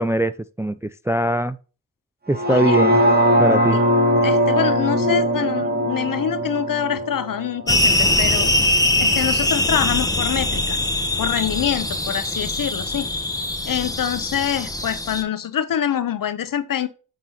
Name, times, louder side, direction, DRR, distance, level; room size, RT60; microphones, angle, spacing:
voice 1, 0.0-1.6 2.3-3.0 3.4-3.8, right 1 dB, 10° right, 0.3 m, -22 dB
sound 1, 2.3-8.4 8.9-9.0, equal, 25° right, 1.6 m, -20 dB
voice 2, 2.5-2.8 3.7-3.8 4.2-8.5 9.0-10.8 11.2-13.1 13.6-16.9, left 9 dB, 60° left, 0.9 m, -25 dB
sound 2, 7.7-15.2, left 1 dB, 10° left, 1.0 m, -22 dB
9.5 x 3.8 x 2.9 m
cardioid pair, 55°, 38 cm